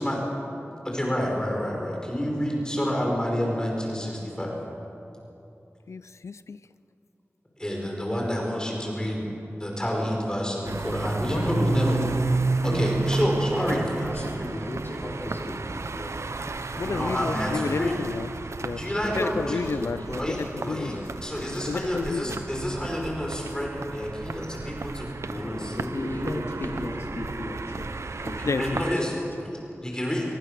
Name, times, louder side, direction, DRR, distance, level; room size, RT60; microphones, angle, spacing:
voice 1, 0.9-4.6 7.6-9.3 9.6-12.0 12.6-14.5 14.9-15.0 16.9-18.0 18.7-19.6 20.2-21.0 21.2-25.7 28.6-29.1 29.8-30.3, equal, 15° left, -1 dB, 5.3 m, -29 dB
voice 2, 5.9-6.6 16.8-18.3 18.6-18.8 19.1-20.0 20.4-21.0 21.7-22.4 28.4-28.8, left 4 dB, 90° left, 14 dB, 0.5 m, -31 dB
sound 1, 10.6-28.9, right 3 dB, 80° right, 0.9 m, -32 dB
voice 3, 11.2-12.3 12.6-13.2 25.9-27.9 28.2-28.4, left 1 dB, 65° left, 0 dB, 2.5 m, -33 dB
voice 4, 14.1-16.2 16.7-16.9 17.3-18.0 18.8-19.2 19.5-21.1 21.4-21.6 25.3-26.9 28.2-29.7, left 1 dB, 45° left, -2 dB, 5.5 m, -37 dB
24.5 x 23.5 x 6.8 m, 2.8 s
wide cardioid pair, 50°, 5 cm